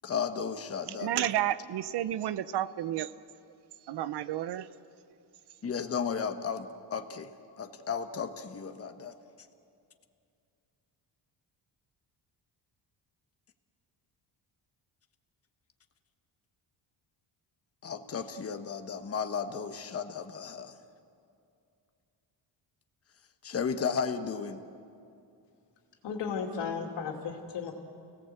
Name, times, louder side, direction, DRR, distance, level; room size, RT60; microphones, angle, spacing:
voice 1, 0.0-1.2 5.6-7.3 7.6-9.1 17.8-20.7 23.4-24.6, left 6 dB, 35° left, 7 dB, 1.2 m, -34 dB
voice 2, 1.0-3.1 3.9-4.7, right 12 dB, 65° right, 16 dB, 0.8 m, -31 dB
voice 3, 26.0-27.7, left 6 dB, 75° left, 2 dB, 2.9 m, -34 dB
29.5 x 18.0 x 8.0 m, 2.5 s
cardioid pair, 140°, 43 cm